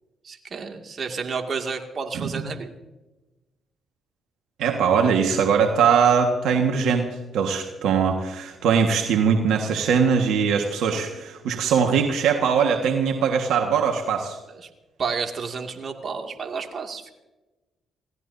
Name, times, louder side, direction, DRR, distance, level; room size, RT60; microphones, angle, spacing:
voice 1, 0.2-2.8 10.9-11.2 14.5-14.7 15.0-17.1, right 5 dB, 55° right, 3 dB, 2.3 m, -31 dB
voice 2, 4.6-7.1 7.3-14.4, right 6 dB, 80° right, 3 dB, 1.6 m, -21 dB
27.5 x 17.5 x 2.8 m, 1.1 s
supercardioid pair, 60°, 0 cm